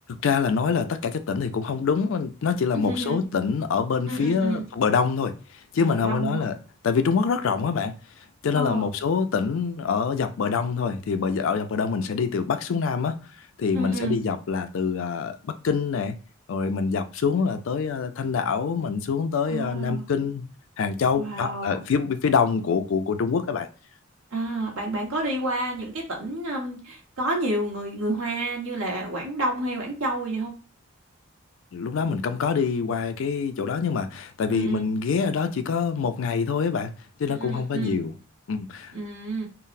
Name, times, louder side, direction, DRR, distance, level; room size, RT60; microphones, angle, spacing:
voice 1, 0.1-5.3 5.7-6.5 6.8-7.9 8.4-13.2 13.6-16.2 16.5-20.5 20.8-23.7 31.7-36.9 37.2-38.2 38.5-38.9, left 5 dB, 65° left, 0.4 m, -25 dB
voice 2, 2.7-3.2 4.1-4.7 5.9-6.5 8.5-8.9 13.7-14.2 19.5-20.0 21.2-21.8 24.3-30.5 34.5-34.9 37.3-38.0 38.9-39.5, right 1 dB, 85° right, 1.2 m, -29 dB
3.7 x 2.0 x 2.5 m
head